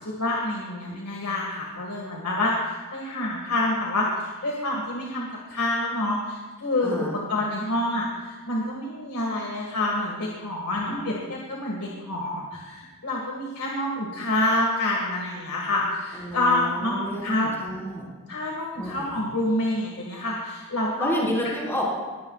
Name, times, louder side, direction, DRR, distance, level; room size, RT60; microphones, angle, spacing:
voice 1, 0.0-6.9 7.3-17.5 18.3-21.3, left 1 dB, 90° left, -2 dB, 2.0 m, -27 dB
voice 2, 6.8-7.1 10.7-11.1 16.1-18.1 18.8-19.3 21.0-21.8, equal, 10° left, -5 dB, 4.6 m, -30 dB
21.0 x 15.0 x 2.4 m, 1.3 s
head